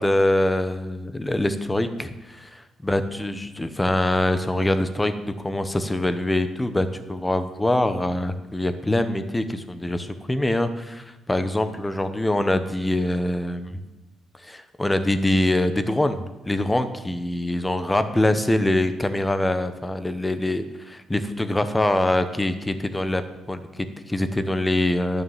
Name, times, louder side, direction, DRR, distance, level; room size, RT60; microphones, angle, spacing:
voice 1, 0.0-13.8 14.4-23.2 23.5-25.2, left 1 dB, 10° left, 10 dB, 1.0 m, -24 dB
11.5 x 6.4 x 7.3 m, 1.1 s
cardioid pair, 90°, 0 cm